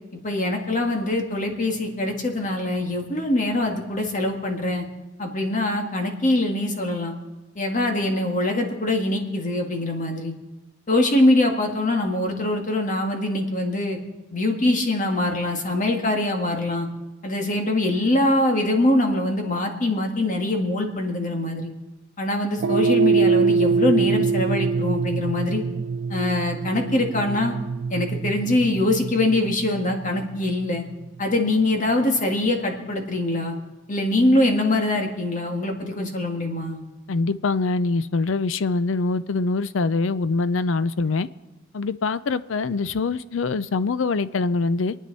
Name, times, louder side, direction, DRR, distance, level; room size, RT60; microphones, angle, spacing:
voice 1, 0.2-4.9 5.2-7.1 7.6-10.3 10.9-14.0 14.3-16.9 17.2-21.7 22.2-25.6 26.1-27.5 27.9-30.8 31.2-33.5 33.9-36.8, left 1 dB, 40° left, 3 dB, 2.0 m, -23 dB
sound 1, 22.6-31.1, right 5 dB, 75° right, 0.4 m, -24 dB
voice 2, 37.1-41.3 41.7-45.0, left 3 dB, 80° left, 16 dB, 0.5 m, -24 dB
27.0 x 9.4 x 4.1 m, 1.1 s
head